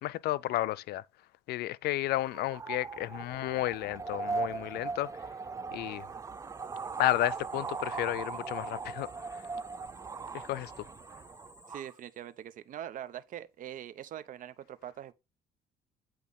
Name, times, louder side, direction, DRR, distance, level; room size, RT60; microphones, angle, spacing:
voice 1, 0.0-1.0 1.5-5.2 5.7-6.1 7.0-9.4 10.3-10.9, left 16 dB, 70° left, 0.4 m, -32 dB
sound 1, 2.2-11.9, right 4 dB, 20° right, 0.3 m, -39 dB
sound 2, 5.9-12.4, left 2 dB, 25° left, 1.3 m, -59 dB
voice 2, 11.7-15.1, right 11 dB, 50° right, 0.7 m, -43 dB
8.4 x 3.1 x 5.2 m
cardioid pair, 110°, 17 cm